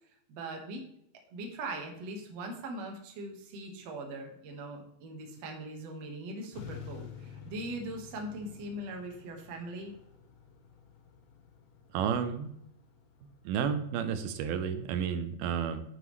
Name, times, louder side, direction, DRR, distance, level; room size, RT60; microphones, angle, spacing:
voice 1, 0.3-0.8 1.3-9.9, right 1 dB, 55° right, 2 dB, 2.3 m, -40 dB
sound 1, 6.5-13.6, left 7 dB, 85° left, 3.2 m, -50 dB
voice 2, 11.9-12.5 13.5-15.8, right 7 dB, 90° right, 9 dB, 2.6 m, -31 dB
9.3 x 7.5 x 3.2 m, 0.74 s
omnidirectional pair, 4.2 m